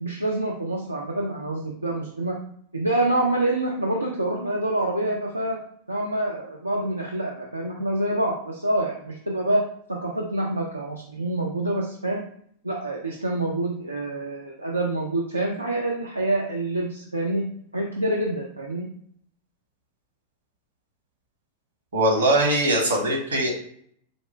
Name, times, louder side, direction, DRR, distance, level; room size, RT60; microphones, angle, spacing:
voice 1, 0.0-2.4 2.7-5.6 5.9-12.2 12.6-17.4 17.7-18.9, right 1 dB, 85° right, -1 dB, 0.5 m, -26 dB
voice 2, 21.9-23.5, right 1 dB, 70° right, 0 dB, 1.2 m, -21 dB
4.1 x 2.4 x 3.3 m, 0.64 s
figure-of-eight pair, 90°, 0 cm